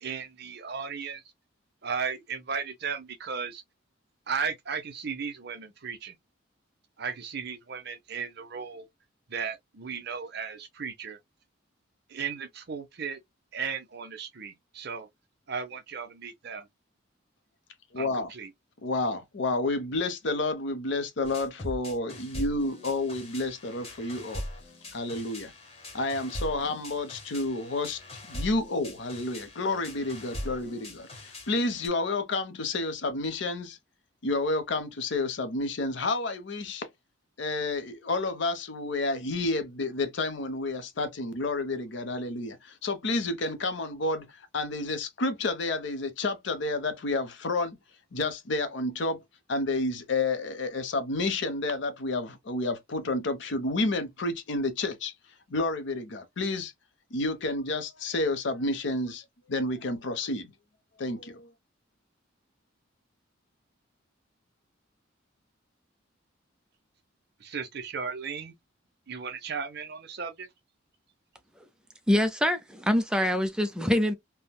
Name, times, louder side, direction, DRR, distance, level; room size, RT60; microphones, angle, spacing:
voice 1, 0.0-1.2 1.8-3.6 4.3-6.1 7.0-8.9 9.3-11.2 12.1-13.2 13.5-15.1 15.5-16.7 18.0-18.5 67.4-68.5 69.1-70.5, right 6 dB, 55° right, 0.6 m, -35 dB
voice 2, 17.9-18.3 18.8-24.4 24.9-25.5 25.9-28.0 28.3-33.8 34.2-36.9 37.4-47.8 48.1-49.2 49.5-55.1 55.5-56.7 57.1-59.2 59.5-60.5 61.0-61.5, left 2 dB, 60° left, 0.6 m, -30 dB
sound 1, 21.2-31.9, left 1 dB, 30° left, 1.0 m, -41 dB
voice 3, 72.1-74.1, left 1 dB, 5° right, 0.4 m, -25 dB
3.4 x 2.1 x 2.2 m
head